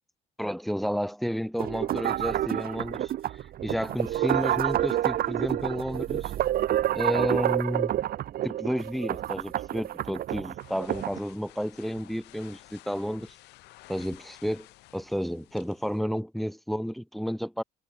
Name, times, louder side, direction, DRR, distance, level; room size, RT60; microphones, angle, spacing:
voice 1, 0.4-6.3 6.9-8.0 8.4-13.3 13.9-14.7 14.9-17.6, equal, ahead, 2.6 m, -31 dB
sound 1, 1.6-11.2, right 12 dB, 60° right, 1.4 m, -28 dB
sound 2, 10.6-16.0, left 20 dB, 90° left, 6.5 m, -53 dB
cardioid pair, 110°, 17 cm